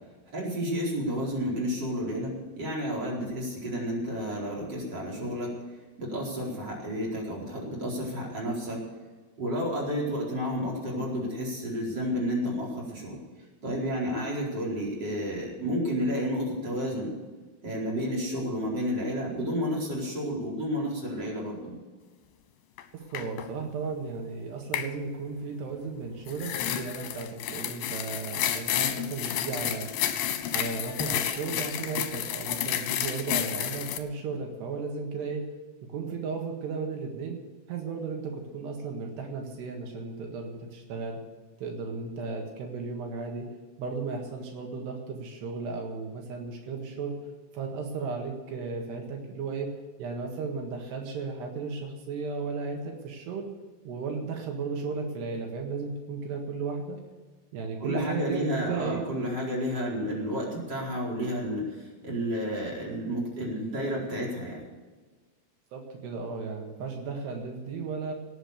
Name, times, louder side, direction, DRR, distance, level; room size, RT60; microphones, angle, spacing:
voice 1, 0.3-5.5 6.0-8.8 9.4-13.2 13.6-17.1 17.6-21.7 57.8-64.6, equal, 25° right, -4 dB, 4.8 m, -31 dB
sound 1, 22.8-22.9 23.2-23.5 24.7-24.9 26.3-34.0, left 10 dB, 75° left, 2.6 m, -31 dB
voice 2, 23.1-29.9 30.5-35.4 35.9-37.4 37.7-41.2 41.6-43.5 43.8-47.1 47.5-49.7 50.0-53.5 53.9-57.0 57.5-59.0 65.7-68.1, right 4 dB, 80° right, 2 dB, 3.8 m, -35 dB
18.0 x 7.7 x 8.3 m, 1.4 s
omnidirectional pair, 4.7 m